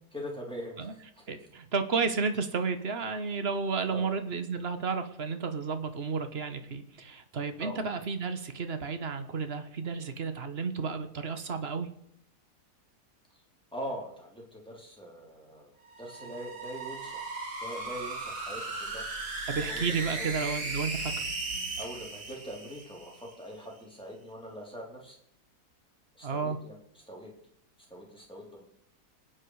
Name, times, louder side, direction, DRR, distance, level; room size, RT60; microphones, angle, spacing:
voice 1, 0.1-1.0 1.3-1.4 3.9-4.1 7.6-7.8 13.7-15.7 16.0-17.2 17.6-19.1 19.7-20.3 21.8-25.2 26.1-26.7 27.1-27.3 27.9-28.6, equal, 5° left, -2 dB, 3.5 m, -42 dB
voice 2, 1.3-11.9 19.5-21.3 26.2-26.6, right 5 dB, 40° right, 9 dB, 1.4 m, -32 dB
sound 1, 15.8-23.3, right 3 dB, 65° right, 2.6 m, -37 dB
26.0 x 9.3 x 4.8 m, 0.74 s
omnidirectional pair, 1.8 m